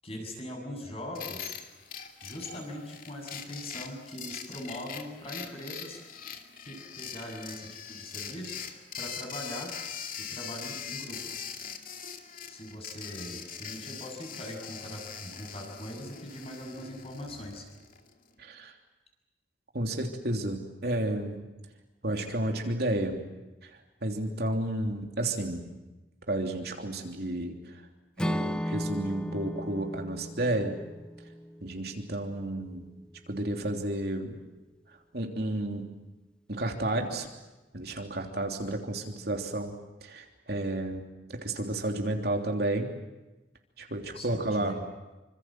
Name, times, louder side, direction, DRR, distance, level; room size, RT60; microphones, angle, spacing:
voice 1, 0.0-1.6 2.2-6.0 6.6-8.6 9.0-9.7 10.2-11.4 12.5-17.7 44.1-44.8, left 1 dB, 35° left, 2 dB, 7.6 m, -41 dB
sound 1, 1.1-18.1, left 7 dB, 50° left, 2.5 m, -42 dB
voice 2, 18.4-18.7 19.7-21.4 22.0-23.2 23.6-23.7 24.0-25.7 26.3-27.8 28.2-30.8 31.6-32.8 33.3-34.4 35.1-35.9 36.5-37.3 37.7-39.7 40.0-41.0 41.3-42.9 43.8-44.8, right 1 dB, 60° right, 3 dB, 3.2 m, -31 dB
Acoustic guitar / Strum, 28.2-32.3, equal, 5° left, 0.8 m, -35 dB
27.0 x 26.0 x 7.7 m, 1.1 s
head